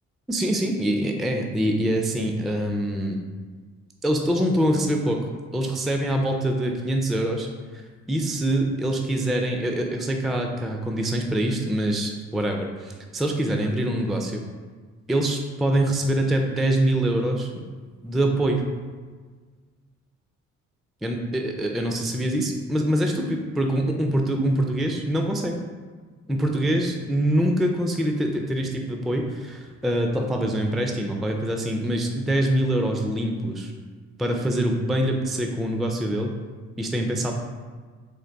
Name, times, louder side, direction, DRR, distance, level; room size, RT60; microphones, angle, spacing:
voice 1, 0.3-3.2 4.0-7.5 7.7-7.8 8.1-14.4 15.1-17.5 18.0-18.6 21.0-25.5 26.3-33.7 34.2-36.3 36.8-37.3, right 1 dB, ahead, 2 dB, 0.3 m, -24 dB
3.8 x 2.5 x 3.4 m, 1.5 s
cardioid pair, 90°, 30 cm